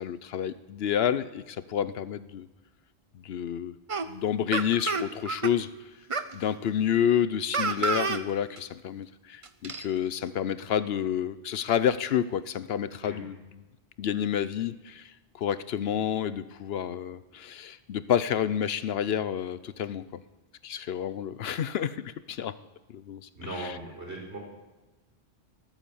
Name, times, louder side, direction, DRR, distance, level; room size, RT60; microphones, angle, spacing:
voice 1, 0.0-2.5 3.1-3.7 4.1-5.7 6.3-13.6 14.0-15.1 15.4-20.2 20.6-22.5 22.9-23.3 23.6-23.7, left 9 dB, 70° left, 15 dB, 0.8 m, -29 dB
sound 1, 3.9-4.1 4.5-5.5 6.1-6.3 7.5-8.2 8.6-8.7 9.4-9.9, right 4 dB, 35° right, 0.7 m, -29 dB
voice 2, 23.3-24.4, right 2 dB, 75° right, -1 dB, 5.1 m, -38 dB
19.5 x 9.1 x 7.1 m, 1.1 s
omnidirectional pair, 1.1 m